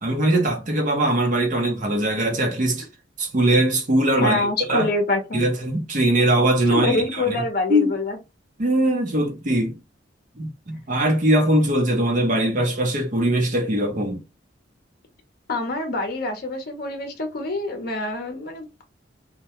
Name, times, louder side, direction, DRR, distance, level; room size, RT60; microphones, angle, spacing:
voice 1, 0.0-2.8 3.2-4.9 5.3-7.4 7.7-7.9 8.6-9.8 10.4-14.2, right 1 dB, 45° right, 0.7 m, -21 dB
voice 2, 4.2-5.4 6.7-8.2 15.5-18.7, left 2 dB, 50° left, 0.6 m, -25 dB
2.2 x 2.1 x 2.8 m
head